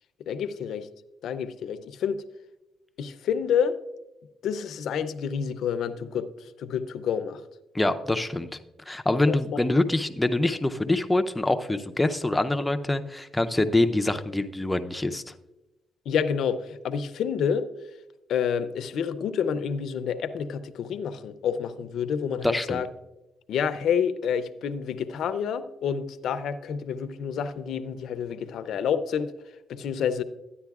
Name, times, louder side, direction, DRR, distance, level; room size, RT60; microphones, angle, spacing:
voice 1, 0.3-0.9 1.2-2.2 3.0-3.8 4.4-7.4 9.3-9.6 10.5-10.6 16.1-18.0 18.3-22.9 23.5-30.2, left 7 dB, 75° left, 11 dB, 0.5 m, -29 dB
voice 2, 7.7-8.5 8.9-15.3 22.4-22.8, left 2 dB, 10° left, 8 dB, 0.6 m, -25 dB
13.0 x 9.8 x 2.4 m, 1.0 s
cardioid pair, 90°, 0 cm